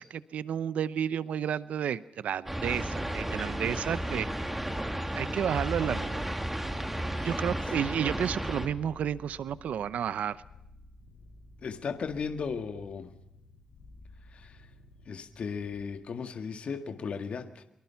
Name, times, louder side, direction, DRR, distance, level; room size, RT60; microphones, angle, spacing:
voice 1, 0.0-4.3 5.1-6.2 7.2-10.4, right 9 dB, 90° right, 0.8 m, -31 dB
sound 1, 2.5-8.7, right 1 dB, 10° right, 2.5 m, -33 dB
sound 2, 8.7-16.1, left 2 dB, 90° left, 7.3 m, -54 dB
voice 2, 11.6-13.1 14.3-14.7 15.1-17.6, left 5 dB, 60° left, 1.8 m, -36 dB
24.5 x 23.5 x 5.8 m
wide cardioid pair, 125°, 2 cm